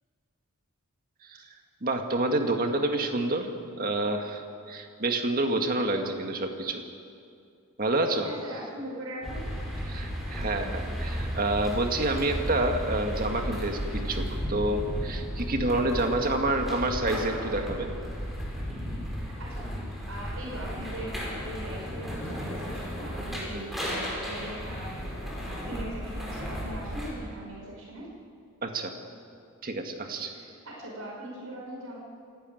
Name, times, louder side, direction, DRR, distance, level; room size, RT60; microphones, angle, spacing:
voice 1, 1.8-3.5 3.8-6.8 7.8-8.3 9.9-17.9 23.5-23.7 28.6-28.9 29.6-30.3, right 2 dB, 40° right, 4 dB, 1.9 m, -28 dB
voice 2, 8.2-9.5 19.4-28.1 30.3-32.0, right 1 dB, 85° right, -3 dB, 5.6 m, -40 dB
sound 1, 9.2-27.1, equal, ahead, 5.2 m, -34 dB
27.5 x 12.5 x 9.3 m, 2.4 s
head